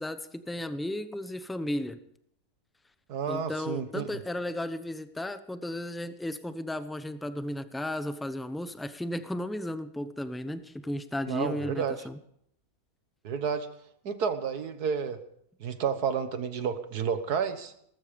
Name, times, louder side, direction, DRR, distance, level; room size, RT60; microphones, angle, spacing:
voice 1, 0.0-2.0 3.3-12.2, left 1 dB, ahead, 10 dB, 0.5 m, -34 dB
voice 2, 3.1-4.2 11.3-12.0 13.2-13.7 14.0-15.2 15.6-17.7, right 6 dB, 80° right, 10 dB, 1.8 m, -30 dB
19.0 x 14.5 x 5.2 m, 0.70 s
omnidirectional pair, 1.6 m